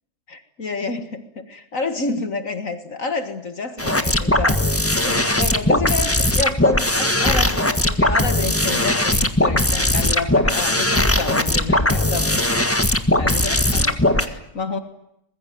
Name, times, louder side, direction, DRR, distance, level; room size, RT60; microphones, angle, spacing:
voice 1, 0.3-12.5 13.2-14.8, left 3 dB, 60° left, 9 dB, 2.2 m, -29 dB
sound 1, 3.8-14.3, left 1 dB, 10° left, 1.6 m, -19 dB
24.0 x 22.0 x 9.3 m, 0.80 s
omnidirectional pair, 1.6 m